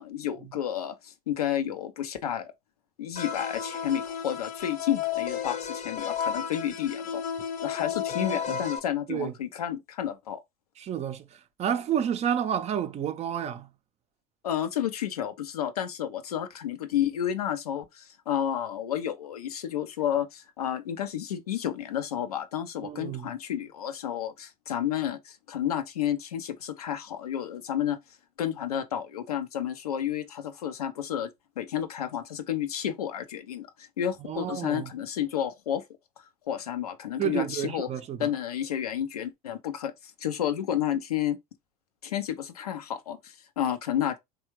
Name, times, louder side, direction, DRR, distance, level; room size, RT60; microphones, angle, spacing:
voice 1, 0.0-2.5 3.0-7.2 7.6-10.4 14.4-28.0 28.4-31.3 31.6-35.8 36.4-37.9 38.2-39.9 40.2-41.4 42.0-44.2, left 10 dB, 90° left, 0.5 m, -31 dB
sound 1, 3.2-8.8, left 8 dB, 45° left, 0.7 m, -33 dB
voice 2, 8.2-8.6 9.1-9.3 10.8-13.7 22.8-23.3 34.2-34.9 37.2-38.3, right 9 dB, 35° right, 0.5 m, -30 dB
3.4 x 2.3 x 2.9 m
hypercardioid pair, 75°, 19 cm